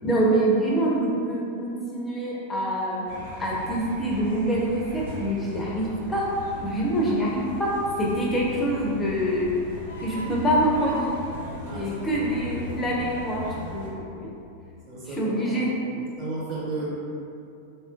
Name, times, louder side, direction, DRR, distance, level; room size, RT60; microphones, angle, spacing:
voice 1, 0.0-3.0 3.4-6.2 6.6-7.7 8.0-9.5 10.0-11.1 11.7-13.4 13.7-14.3 15.1-15.7, right 1 dB, 15° left, -4 dB, 0.5 m, -25 dB
sound 1, 3.1-13.9, left 1 dB, 75° right, 1.2 m, -39 dB
sound 2, 9.8-15.1, left 3 dB, 75° left, 0.4 m, -41 dB
voice 2, 11.6-11.9 14.9-15.3 16.2-17.0, right 2 dB, 35° right, -8 dB, 1.1 m, -33 dB
4.2 x 2.4 x 2.3 m, 2.6 s
figure-of-eight pair, 90°, 0 cm